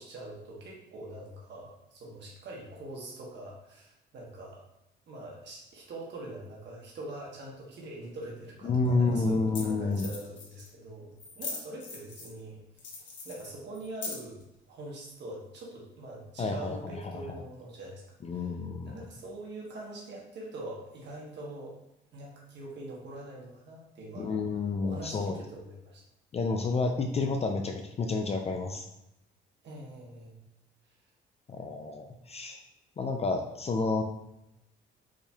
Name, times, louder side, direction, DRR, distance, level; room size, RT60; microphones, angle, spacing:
voice 1, 0.0-4.6 5.1-13.0 13.2-18.0 18.3-18.5 18.8-21.8 22.1-24.3 24.8-26.0 29.6-30.4 30.9-31.0, right 1 dB, 60° right, -3 dB, 1.1 m, -43 dB
sound 1, 8.5-8.6 9.3-9.4 9.5-9.6 9.9-10.7 11.2-12.4 12.8-14.4, left 3 dB, 65° left, 1.0 m, -41 dB
voice 2, 8.6-10.1 16.4-17.2 18.2-19.0 24.1-25.4 26.3-28.9 31.5-32.6 33.0-34.0, left 3 dB, 30° left, 4 dB, 0.3 m, -30 dB
4.8 x 2.6 x 2.3 m, 0.88 s
cardioid pair, 90°, 20 cm